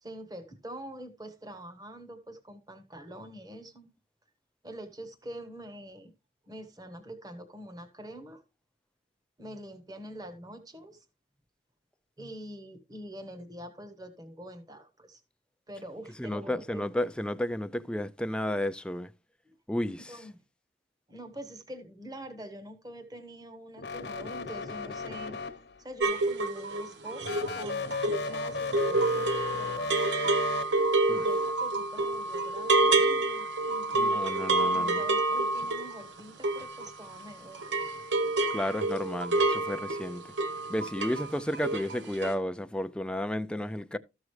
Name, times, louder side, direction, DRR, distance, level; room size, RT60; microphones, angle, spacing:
voice 1, 0.0-3.9 4.6-6.1 6.5-8.4 9.4-11.0 12.2-15.2 15.7-16.8 19.4-19.5 20.1-20.4 21.1-25.4 25.8-30.0 31.1-37.7, right 1 dB, 20° right, 1.3 m, -45 dB
voice 2, 16.2-19.1 19.7-20.2 31.1-31.3 33.9-35.0 38.5-40.2 40.7-44.0, left 1 dB, 5° left, 0.4 m, -32 dB
sound 1, 23.8-25.9 27.2-30.6, left 4 dB, 65° left, 0.9 m, -35 dB
sound 2, 26.0-37.3 37.5-41.3 41.5-42.0 42.2-42.3, right 2 dB, 80° right, 1.0 m, -28 dB
14.0 x 6.2 x 3.2 m
head